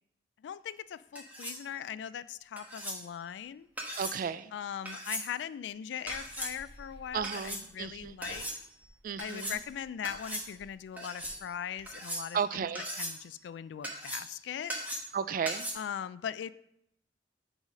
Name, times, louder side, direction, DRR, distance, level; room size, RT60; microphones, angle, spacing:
voice 1, 0.4-3.7 4.5-8.5 9.2-12.7 12.9-14.8 15.7-16.5, left 9 dB, 85° left, 16 dB, 0.3 m, -40 dB
sound 1, 1.2-1.6 2.6-3.0 3.8-4.2 4.9-5.3 6.1-6.5 7.2-7.6 8.2-8.6 9.2-9.6 10.0-10.5 11.0-11.4 11.9-12.4 12.8-13.2 13.8-14.3 14.7-15.2 15.5-15.7, equal, 10° right, 1.2 m, -38 dB
voice 2, 4.0-4.5 7.1-8.2 9.0-9.5 12.3-12.8 15.1-15.6, right 7 dB, 50° right, 14 dB, 0.3 m, -33 dB
sound 2, 6.0-12.1, equal, 90° right, 1.2 m, -55 dB
7.0 x 4.1 x 5.0 m, 0.76 s
head